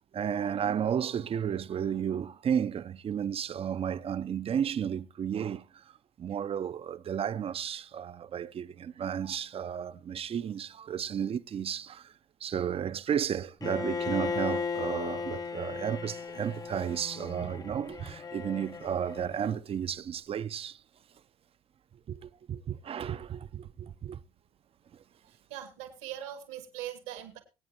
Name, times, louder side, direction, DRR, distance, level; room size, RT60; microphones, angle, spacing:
voice 1, 0.1-5.8 6.2-12.1 12.4-20.8 22.1-24.2, right 8 dB, 45° right, 0.7 m, -33 dB
Bowed string instrument, 13.6-19.6, left 5 dB, 25° left, 0.7 m, -36 dB
voice 2, 25.3-27.4, right 11 dB, 85° right, 2.2 m, -41 dB
23.5 x 8.7 x 3.0 m
hypercardioid pair, 70°, 14 cm